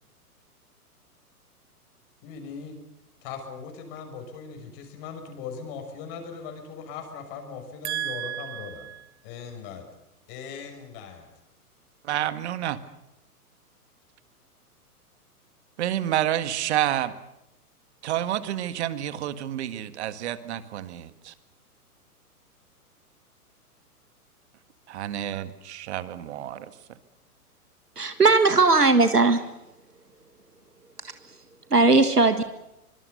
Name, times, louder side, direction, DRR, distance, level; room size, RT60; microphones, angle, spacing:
voice 1, 2.2-2.8 3.2-8.9 9.2-9.9 10.3-11.3, left 6 dB, 35° left, 6.3 m, -39 dB
voice 2, 7.8-9.0 12.0-12.8 15.8-17.1 18.0-21.3 24.9-26.7, right 12 dB, 45° right, 1.9 m, -29 dB
voice 3, 28.0-29.4 31.0-31.4 31.7-32.4, right 3 dB, 85° right, 1.8 m, -19 dB
24.5 x 24.5 x 6.8 m
figure-of-eight pair, 115°, 46 cm